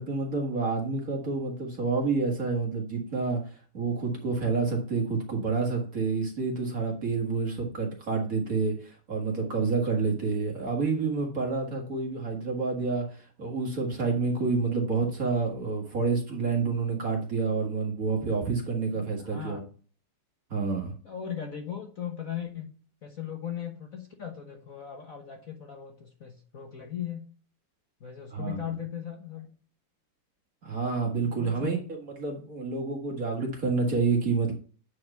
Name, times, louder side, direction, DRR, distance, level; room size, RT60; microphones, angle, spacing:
voice 1, 0.0-3.4 3.7-19.6 20.5-20.9 28.3-28.6 30.6-34.5, right 4 dB, 40° right, 1 dB, 2.0 m, -28 dB
voice 2, 19.2-19.6 21.0-22.7 23.0-27.3 28.0-29.5 31.2-31.7, left 9 dB, 45° left, 2 dB, 1.3 m, -38 dB
8.5 x 4.8 x 5.5 m, 0.40 s
omnidirectional pair, 2.4 m